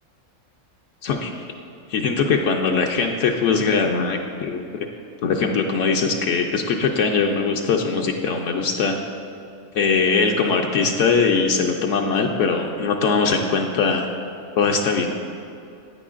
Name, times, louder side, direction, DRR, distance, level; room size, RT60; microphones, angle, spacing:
voice 1, 1.9-4.9 5.2-9.0 9.7-14.1 14.6-15.1, left 5 dB, 75° left, 2 dB, 0.9 m, -21 dB
10.5 x 8.9 x 2.5 m, 2.6 s
omnidirectional pair, 1.3 m